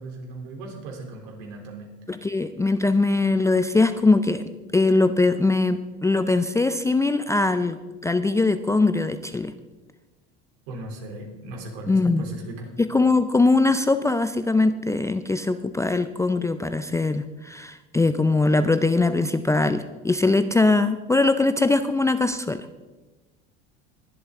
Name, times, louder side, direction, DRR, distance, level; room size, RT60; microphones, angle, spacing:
voice 1, 0.0-2.3 10.7-12.7, right 2 dB, 70° right, 1 dB, 3.4 m, -38 dB
voice 2, 2.1-4.4 4.7-9.5 11.9-12.2 12.8-22.7, left 3 dB, 10° left, 10 dB, 0.4 m, -21 dB
21.0 x 7.9 x 3.7 m, 1.2 s
hypercardioid pair, 90°, 34 cm